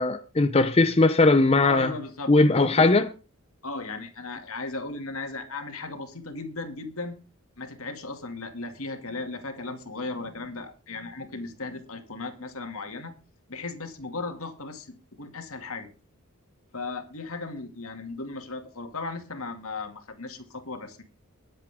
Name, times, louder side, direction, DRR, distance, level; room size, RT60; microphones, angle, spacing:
voice 1, 0.0-1.9 2.3-3.1, left 2 dB, 25° left, 0.6 m, -19 dB
voice 2, 1.6-2.9 3.6-7.2 7.6-13.1 13.5-15.9 16.7-21.0, left 3 dB, 75° left, 2.3 m, -36 dB
22.0 x 7.8 x 3.6 m
head